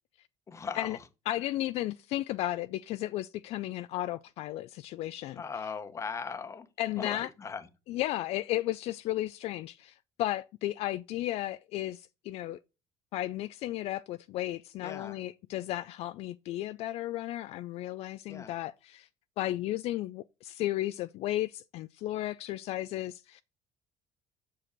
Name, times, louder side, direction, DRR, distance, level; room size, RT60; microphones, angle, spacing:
voice 1, 0.5-1.0 5.4-6.7 7.0-7.6 14.8-15.2 18.3-18.5, left 5 dB, 25° left, 1.1 m, -38 dB
voice 2, 1.3-5.4 6.8-7.3 7.9-12.6 13.1-19.1 19.4-23.4, left 15 dB, 60° left, 0.4 m, -34 dB
7.4 x 6.2 x 6.5 m
cardioid pair, 135°, 12 cm